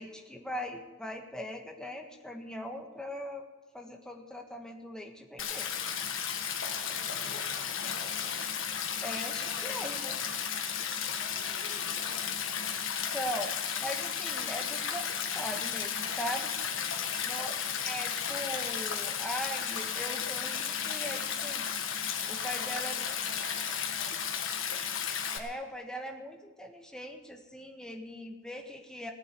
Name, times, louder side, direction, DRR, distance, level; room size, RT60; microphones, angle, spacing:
voice 1, 0.0-3.4 3.7-5.7 9.0-10.2 13.1-16.5 17.3-17.5 17.8-21.7 22.3-23.2 25.3-29.1, equal, 5° left, 2 dB, 1.5 m, -40 dB
Stream, 5.4-25.4, left 7 dB, 80° left, 1.6 m, -34 dB
voice 2, 6.6-8.4 9.2-10.2 10.9-12.3 16.7-17.2 22.3-24.4, equal, 40° right, -6 dB, 7.1 m, -51 dB
18.0 x 7.6 x 9.4 m, 1.2 s
head